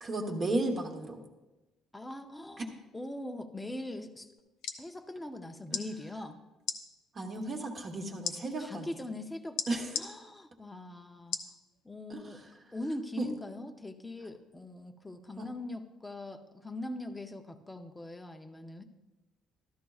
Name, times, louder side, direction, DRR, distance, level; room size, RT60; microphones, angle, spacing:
voice 1, 0.0-1.2 2.6-2.7 7.1-8.9 9.7-10.0 12.1-12.4 13.2-13.3 15.4-15.5, right 2 dB, 25° right, 2 dB, 1.0 m, -34 dB
voice 2, 1.9-4.3 4.8-6.4 8.6-11.4 11.8-12.4 12.7-18.8, left 1 dB, 5° left, 6 dB, 0.6 m, -41 dB
sound 1, 4.4-4.8 5.7-5.9 6.6-6.8 8.2-8.4 9.6-10.1 11.3-11.5 12.1-12.2, left 7 dB, 75° left, 0.8 m, -34 dB
13.5 x 12.5 x 2.3 m, 1.1 s
cardioid pair, 175°, 0 cm